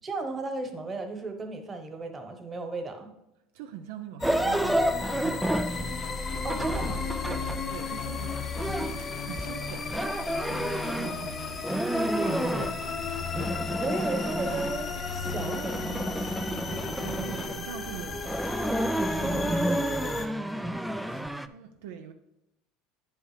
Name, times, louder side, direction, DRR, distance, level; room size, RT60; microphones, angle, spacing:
voice 1, 0.0-3.1 6.4-7.0 13.8-16.5, right 3 dB, 25° right, 1.1 m, -35 dB
voice 2, 3.5-5.9 7.2-13.5 17.0-22.1, right 8 dB, 75° right, 0.4 m, -44 dB
sound 1, 4.2-20.3, left 4 dB, 30° left, 0.8 m, -34 dB
sound 2, 4.2-7.7 8.6-11.3 11.6-12.8 13.1-14.9 15.2-17.6 18.1-21.5, right 1 dB, 5° right, 0.4 m, -30 dB
sound 3, 5.6-17.5, left 5 dB, 55° left, 1.0 m, -46 dB
9.4 x 5.5 x 3.3 m
supercardioid pair, 95°, 0 cm